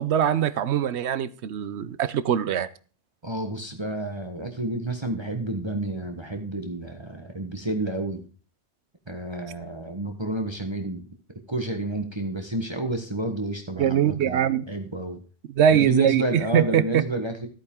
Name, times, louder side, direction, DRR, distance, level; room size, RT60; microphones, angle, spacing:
voice 1, 0.0-2.7 13.8-14.6 15.6-17.0, right 9 dB, 75° right, 1.0 m, -22 dB
voice 2, 3.2-8.2 9.1-11.1 11.5-15.2 15.7-17.5, right 2 dB, 25° right, 1.2 m, -30 dB
13.5 x 8.9 x 3.7 m
omnidirectional pair, 1.2 m